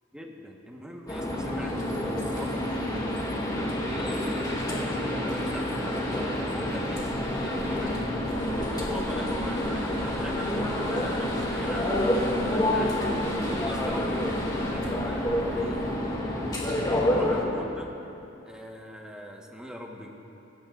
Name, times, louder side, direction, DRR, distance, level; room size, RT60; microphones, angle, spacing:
voice 1, 0.1-2.6 3.0-3.1 3.5-8.0 8.7-11.9 12.4-13.0 13.4-14.3 14.6-15.8 16.8-17.9 18.5-20.1, equal, 5° right, 0 dB, 1.2 m, -41 dB
sound 1, 1.1-17.4, left 1 dB, 20° left, 2.2 m, -28 dB
Telephone, 7.0-16.0, left 1 dB, 80° left, 1.6 m, -44 dB
25.5 x 15.0 x 2.5 m, 2.9 s
head